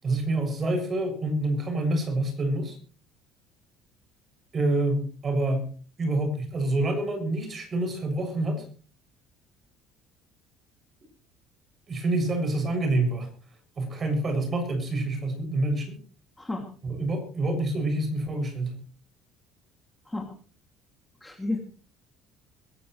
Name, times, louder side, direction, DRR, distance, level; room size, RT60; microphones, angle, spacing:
voice 1, 0.0-2.8 4.5-5.7 6.0-8.7 11.9-13.3 13.8-16.0 16.8-18.8, right 2 dB, 25° right, 7 dB, 7.0 m, -27 dB
voice 2, 21.2-21.6, left 2 dB, 5° left, 2 dB, 2.5 m, -31 dB
22.5 x 15.5 x 3.2 m, 0.39 s
cardioid pair, 150°, 0 cm